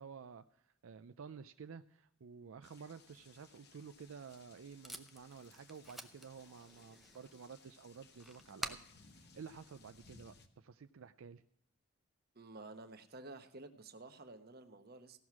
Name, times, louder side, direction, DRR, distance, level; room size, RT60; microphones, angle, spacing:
voice 1, 0.0-8.9 9.1-11.4, right 6 dB, 80° right, 9 dB, 0.4 m, -52 dB
sound 1, 2.6-10.5, left 4 dB, 50° left, 1.1 m, -63 dB
Packing tape duct tape, 3.9-10.4, right 1 dB, ahead, 0.6 m, -52 dB
voice 2, 12.3-15.2, right 2 dB, 50° right, 8 dB, 1.0 m, -52 dB
16.5 x 6.3 x 5.8 m, 0.73 s
head